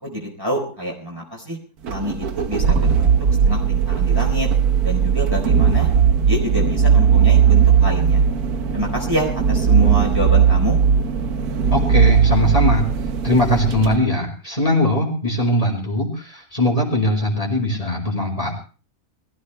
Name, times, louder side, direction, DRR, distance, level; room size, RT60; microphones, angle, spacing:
voice 1, 0.0-1.6 1.9-3.1 3.5-4.5 4.8-5.9 6.2-8.2 8.7-10.8, equal, 15° right, -1 dB, 4.3 m, -26 dB
sound 1, 1.8-14.0, right 7 dB, 85° right, 1.6 m, -17 dB
voice 2, 11.7-12.9 13.2-18.5, left 1 dB, 25° left, -1 dB, 5.0 m, -20 dB
23.5 x 15.0 x 3.3 m, 0.38 s
omnidirectional pair, 1.6 m